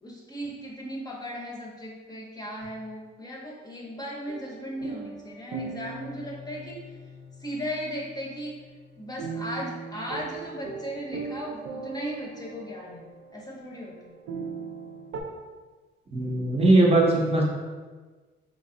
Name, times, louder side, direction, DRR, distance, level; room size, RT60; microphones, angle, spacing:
voice 1, 0.0-6.9 7.4-8.5 9.0-14.2, equal, 20° left, -2 dB, 0.7 m, -37 dB
sound 1, 4.3-15.2, right 4 dB, 80° right, 0.5 m, -40 dB
voice 2, 16.1-17.4, right 2 dB, 30° right, -3 dB, 0.7 m, -20 dB
3.3 x 2.0 x 3.7 m, 1.3 s
cardioid pair, 90°, 20 cm